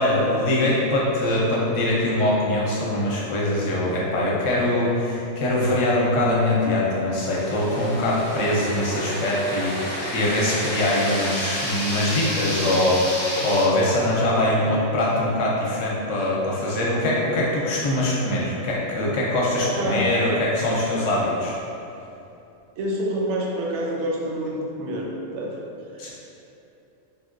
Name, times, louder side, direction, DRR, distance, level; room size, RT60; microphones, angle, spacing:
voice 1, 0.0-21.6 26.0-26.1, left 1 dB, 70° left, -5 dB, 0.9 m, -23 dB
sound 1, 7.2-13.7, equal, 25° left, 0.6 m, -30 dB
voice 2, 14.5-15.0 19.6-20.1 22.8-25.1 25.3-25.7 25.9-26.1, right 1 dB, 65° right, -2 dB, 0.8 m, -28 dB
3.6 x 2.2 x 2.4 m, 2.8 s
omnidirectional pair, 1.4 m